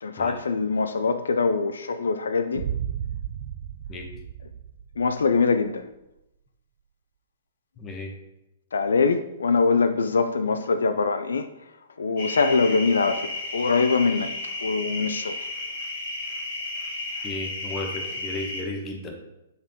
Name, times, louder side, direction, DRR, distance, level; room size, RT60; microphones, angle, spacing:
voice 1, 0.0-2.7 5.0-5.8 8.7-11.5 12.0-14.3 14.6-15.4, left 4 dB, 90° left, 10 dB, 0.4 m, -23 dB
sound 1, 2.5-5.5, right 9 dB, 60° right, 0.4 m, -34 dB
voice 2, 7.8-8.1 17.2-19.1, left 2 dB, 25° left, 3 dB, 1.1 m, -34 dB
sound 2, 12.2-18.6, left 2 dB, 65° left, 1.9 m, -33 dB
7.8 x 3.6 x 3.6 m, 0.91 s
hypercardioid pair, 140°, 0 cm